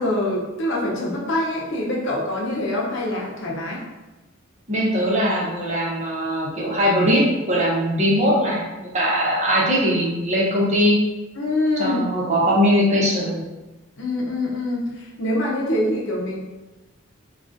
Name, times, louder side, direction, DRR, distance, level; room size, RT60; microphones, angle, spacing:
voice 1, 0.0-3.8 11.4-12.0 14.0-16.4, left 1 dB, 65° left, -3 dB, 0.7 m, -25 dB
voice 2, 4.7-11.0 11.8-13.4, equal, 35° right, -5 dB, 0.8 m, -20 dB
3.6 x 2.3 x 2.6 m, 1.1 s
head